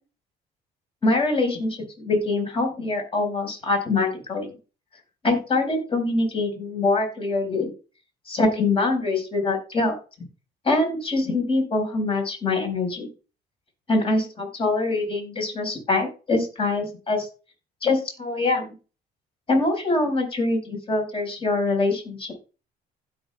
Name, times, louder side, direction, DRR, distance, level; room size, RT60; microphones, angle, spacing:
voice 1, 1.0-4.5 5.2-7.7 8.3-9.9 10.6-13.1 13.9-17.3 17.8-18.7 19.5-22.3, left 2 dB, 35° left, 2 dB, 4.4 m, -24 dB
16.0 x 6.2 x 2.2 m, 0.33 s
cardioid pair, 110°, 17 cm